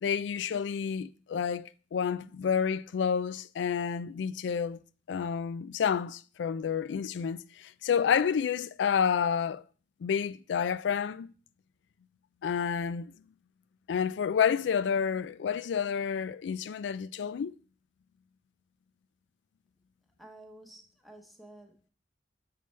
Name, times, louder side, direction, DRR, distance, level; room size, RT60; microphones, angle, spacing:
voice 1, 0.0-4.8 5.1-9.6 10.0-11.3 12.4-13.1 13.9-17.5, left 7 dB, 75° left, 0.3 m, -29 dB
voice 2, 20.2-21.9, right 1 dB, ahead, 0.9 m, -52 dB
6.7 x 6.6 x 3.2 m
head